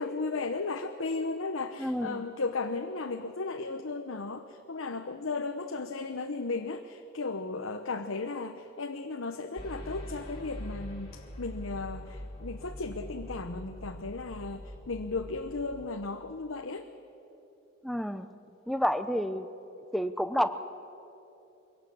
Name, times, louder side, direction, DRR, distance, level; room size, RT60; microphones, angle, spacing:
voice 1, 0.0-16.9, left 3 dB, 70° left, 5 dB, 0.9 m, -35 dB
voice 2, 1.8-2.2 17.8-18.3 18.7-19.5 19.9-20.5, equal, ahead, 10 dB, 0.6 m, -29 dB
sound 1, 9.6-15.8, left 1 dB, 25° left, 3.6 m, -43 dB
23.0 x 17.5 x 8.5 m, 2.9 s
head